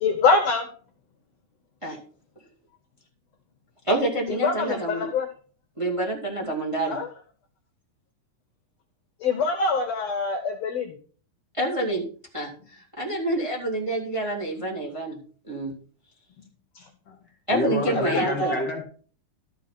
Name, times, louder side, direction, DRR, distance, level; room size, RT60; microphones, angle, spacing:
voice 1, 0.0-0.7 4.4-5.3 6.9-7.1 9.2-11.0 16.8-16.9 17.9-18.6, left 4 dB, 65° left, 4 dB, 1.8 m, -24 dB
voice 2, 3.9-5.1 5.8-7.0 11.6-12.0 12.3-15.2 15.4-15.7 17.5-18.5, right 1 dB, 10° right, 0 dB, 2.0 m, -27 dB
voice 3, 17.5-18.8, left 2 dB, 40° left, 0 dB, 2.2 m, -28 dB
12.5 x 5.1 x 5.8 m, 0.42 s
omnidirectional pair, 3.8 m